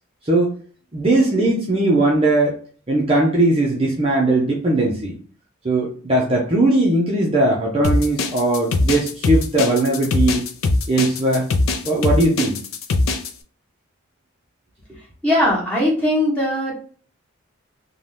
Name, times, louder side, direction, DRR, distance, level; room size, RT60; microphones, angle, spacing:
voice 1, 0.2-0.6 0.9-2.5 2.9-5.1 5.6-10.4 10.9-11.5 11.8-12.6, right 2 dB, 25° right, -3 dB, 0.5 m, -19 dB
sound 1, 7.8-13.3, left 2 dB, 70° left, 0.4 m, -21 dB
voice 2, 15.2-16.8, left 1 dB, 5° left, -6 dB, 1.1 m, -19 dB
2.7 x 2.2 x 3.2 m, 0.43 s
head